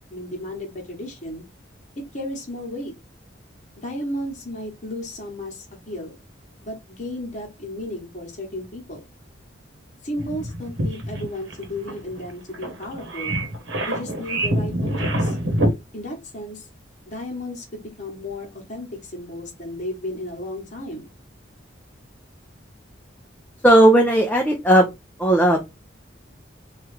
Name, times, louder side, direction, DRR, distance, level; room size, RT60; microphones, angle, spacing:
voice 1, 0.1-1.4 2.1-2.9 3.8-6.2 6.6-9.0 10.0-13.4 13.8-15.4 15.9-16.7 17.1-21.1, left 1 dB, 40° left, 0 dB, 1.0 m, -34 dB
sound 1, 10.2-15.7, right 1 dB, 75° right, 1.0 m, -25 dB
voice 2, 23.6-24.8 25.2-25.7, right 1 dB, 10° left, 1 dB, 0.4 m, -15 dB
3.1 x 2.4 x 3.2 m, 0.22 s
head